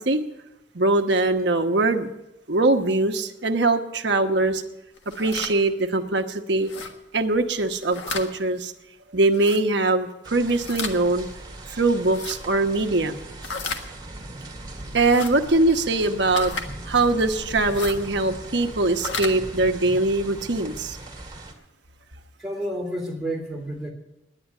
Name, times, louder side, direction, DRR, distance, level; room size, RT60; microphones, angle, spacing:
voice 1, 0.7-2.1 2.5-4.6 5.2-6.7 7.1-8.7 9.1-11.3 11.8-13.2 14.9-16.5 16.9-21.0, right 2 dB, 65° right, 5 dB, 1.1 m, -22 dB
sound 1, 5.0-5.5 6.6-6.9 7.7-8.3 9.3-9.6 10.5-11.0 12.0-12.4 13.4-13.8 15.0-15.3 16.3-16.7 17.6-18.0 18.9-19.3, left 4 dB, 80° left, 1.5 m, -33 dB
sound 2, 10.2-21.5, right 2 dB, 25° right, 1.9 m, -39 dB
voice 2, 22.4-23.9, right 1 dB, ahead, -2 dB, 3.0 m, -30 dB
10.5 x 10.0 x 9.3 m, 0.93 s
head